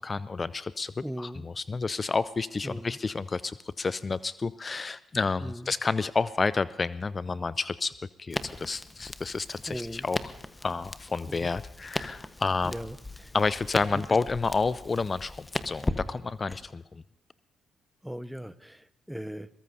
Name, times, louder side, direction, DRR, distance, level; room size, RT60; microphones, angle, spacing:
voice 1, 0.0-7.9 8.2-10.2 10.6-12.7 13.3-17.0, left 4 dB, 35° left, 17 dB, 0.4 m, -30 dB
voice 2, 1.0-1.5 2.6-3.0 5.4-5.7 9.7-10.1 11.3-11.5 12.6-13.3 13.9-14.0 18.0-19.5, equal, 5° right, 16 dB, 0.8 m, -38 dB
Crackle, 8.3-16.6, left 2 dB, 20° left, 1.1 m, -38 dB
22.0 x 19.5 x 2.8 m, 0.99 s
hypercardioid pair, 45°, 0 cm